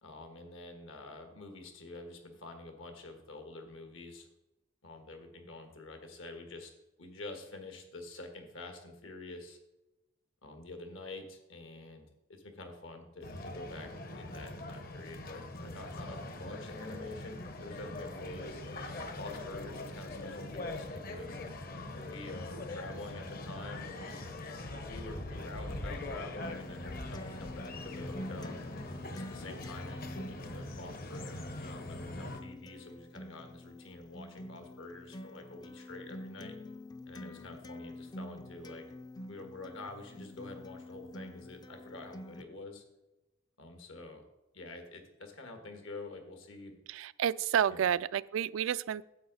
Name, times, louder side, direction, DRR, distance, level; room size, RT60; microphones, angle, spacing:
voice 1, 0.0-4.3 4.8-6.7 7.0-9.6 10.4-13.9 14.2-18.6 19.2-21.4 22.1-24.3 24.9-28.6 29.1-36.5 37.1-38.9 39.3-42.8 43.6-44.2 44.5-46.8 47.7-47.9, left 2 dB, 75° left, 6 dB, 1.6 m, -47 dB
sound 1, 13.2-32.4, left 2 dB, 45° left, 0.8 m, -42 dB
Acoustic guitar, 26.4-42.4, left 1 dB, 20° left, 0.4 m, -47 dB
voice 2, 46.9-49.0, right 9 dB, 80° right, 18 dB, 0.3 m, -30 dB
9.4 x 7.8 x 4.0 m, 1.0 s
head